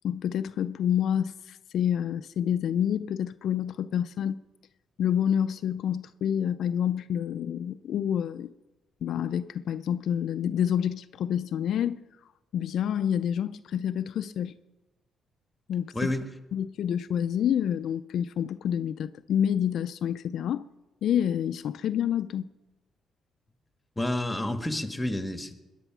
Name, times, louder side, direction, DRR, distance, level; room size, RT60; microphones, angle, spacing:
voice 1, 0.0-4.4 5.0-8.5 9.0-12.0 12.5-14.6 15.7-16.1 16.5-20.6 21.0-22.5, left 9 dB, 70° left, 0.4 m, -28 dB
voice 2, 15.9-16.2 24.0-25.6, left 1 dB, 10° left, 1.5 m, -29 dB
20.0 x 10.0 x 5.9 m
cardioid pair, 90°, 0 cm